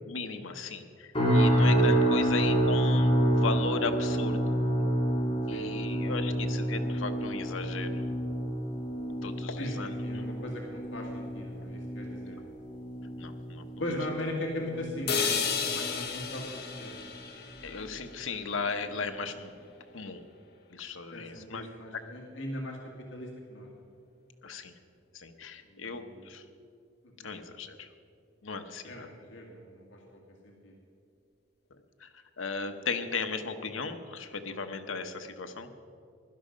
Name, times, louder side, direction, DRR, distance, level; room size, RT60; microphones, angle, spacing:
voice 1, 0.1-4.6 5.5-8.0 9.0-10.0 12.3-12.4 13.2-13.7 17.6-19.5 19.9-20.2 20.7-21.7 21.9-22.0 24.4-24.7 25.1-26.4 27.2-27.9 28.4-29.1 32.0-32.1 32.4-35.7, left 4 dB, 90° left, 7 dB, 1.0 m, -36 dB
sound 1, 1.1-16.4 16.7-17.1 17.6-17.8, right 1 dB, 30° left, 3.7 m, -29 dB
voice 2, 2.0-2.3 5.5-6.1 9.6-12.5 13.8-17.0 21.1-22.8 23.1-23.7 25.6-26.3 27.2-27.3 28.8-30.7, left 1 dB, 70° left, 0 dB, 1.9 m, -39 dB
sound 2, 15.1-19.1, left 6 dB, 55° left, 1.2 m, -33 dB
16.0 x 11.5 x 5.1 m, 2.5 s
head